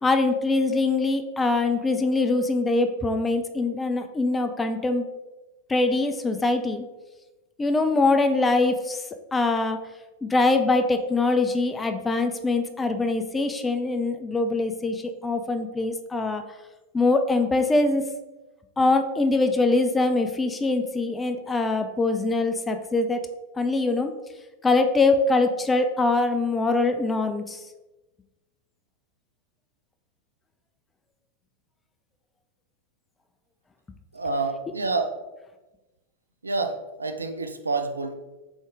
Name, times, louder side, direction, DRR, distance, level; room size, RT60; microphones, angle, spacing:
voice 1, 0.0-5.1 5.7-6.8 7.6-9.0 9.3-9.8 10.2-16.4 16.9-18.0 18.8-23.2 23.6-24.1 24.6-27.6, left 3 dB, 15° left, 7 dB, 0.4 m, -23 dB
voice 2, 34.1-35.2 36.4-38.1, right 3 dB, 75° right, 7 dB, 0.4 m, -28 dB
3.9 x 3.7 x 3.5 m, 1.1 s
figure-of-eight pair, 90°, 0 cm